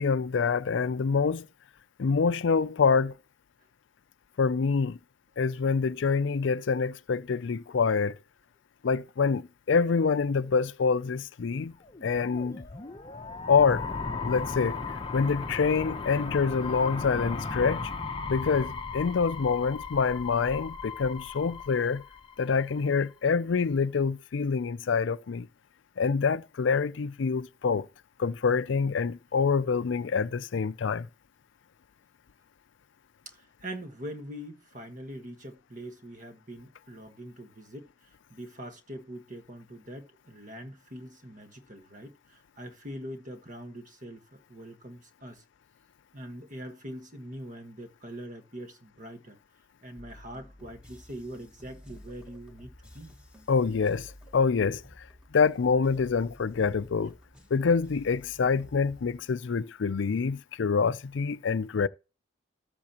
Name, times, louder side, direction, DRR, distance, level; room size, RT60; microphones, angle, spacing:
voice 1, 0.0-1.5 2.0-3.1 4.4-5.0 5.4-8.2 8.8-11.7 12.0-12.6 13.5-13.9 14.2-14.8 15.1-17.9 18.3-22.0 22.4-25.5 26.0-27.9 28.2-31.1 53.5-55.1 55.3-57.1 57.5-61.9, left 5 dB, 70° left, 0.4 m, -26 dB
sound 1, 11.8-22.8, left 4 dB, 25° left, 0.7 m, -36 dB
voice 2, 33.2-37.9 38.3-45.4 46.1-49.4 49.8-53.2, equal, 40° right, 1.4 m, -43 dB
sound 2, 50.0-59.2, left 1 dB, 5° right, 1.5 m, -52 dB
13.5 x 6.9 x 2.9 m
head